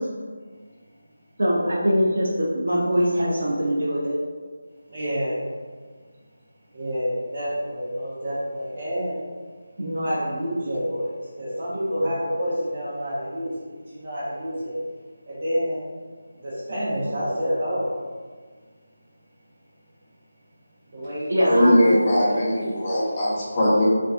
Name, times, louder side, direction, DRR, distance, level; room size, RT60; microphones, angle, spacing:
voice 1, 1.4-4.2 21.3-21.7, equal, 70° right, -5 dB, 0.4 m, -22 dB
voice 2, 4.9-5.3 6.7-9.2 9.8-13.5 14.0-14.7 15.3-15.8 16.4-17.9 20.9-21.9 22.2-22.7, equal, 45° right, -12 dB, 0.8 m, -28 dB
voice 3, 21.4-23.8, equal, 25° left, -8 dB, 0.5 m, -20 dB
2.4 x 2.2 x 2.4 m, 1.5 s
figure-of-eight pair, 170°, 0 cm